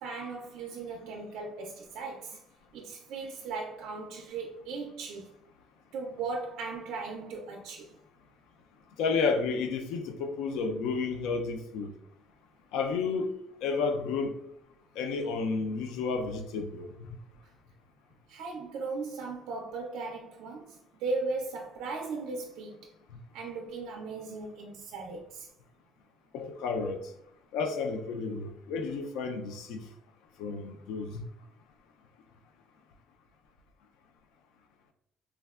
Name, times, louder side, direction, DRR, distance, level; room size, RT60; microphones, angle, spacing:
voice 1, 0.0-2.4 2.7-5.3 5.9-7.9 18.3-22.9 23.3-25.5, right 3 dB, 60° right, 0.3 m, -37 dB
voice 2, 9.0-11.9 12.7-13.3 13.6-14.3 15.0-17.2 26.3-27.0 27.5-29.8 30.4-31.2, left 4 dB, 75° left, 0.3 m, -31 dB
3.3 x 2.1 x 2.3 m
cardioid pair, 175°, 0 cm